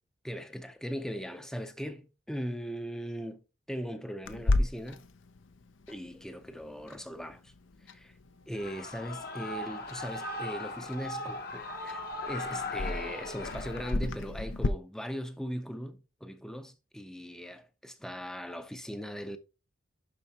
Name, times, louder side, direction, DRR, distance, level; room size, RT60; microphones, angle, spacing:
voice 1, 0.2-3.4 3.7-5.0 5.9-7.5 7.8-8.1 8.5-19.4, equal, 5° left, 0.5 m, -39 dB
Clock, 4.2-14.7, left 2 dB, 70° left, 0.6 m, -36 dB
Shout / Cheering, 8.5-13.9, left 2 dB, 50° left, 1.0 m, -38 dB
11.0 x 4.4 x 2.8 m
head